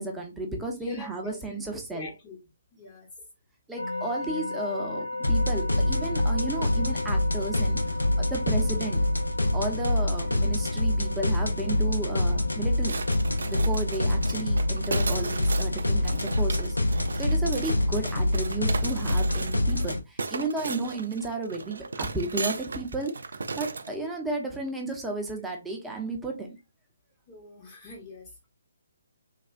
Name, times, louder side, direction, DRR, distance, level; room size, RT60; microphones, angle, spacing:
voice 1, 0.0-2.1 3.7-7.8 8.2-9.1 9.5-13.0 13.5-16.8 17.2-23.1 23.6-26.5, right 2 dB, 5° right, 0.6 m, -33 dB
voice 2, 0.8-1.4 1.7-2.4 2.7-3.1 20.5-20.6 27.3-28.5, left 1 dB, 25° left, 0.9 m, -45 dB
sound 1, 3.8-18.8, left 2 dB, 55° left, 0.9 m, -38 dB
sound 2, 5.2-20.0, left 1 dB, 85° left, 0.5 m, -26 dB
sound 3, 12.8-23.9, right 4 dB, 65° right, 0.3 m, -36 dB
3.3 x 2.4 x 2.3 m
figure-of-eight pair, 140°, 0 cm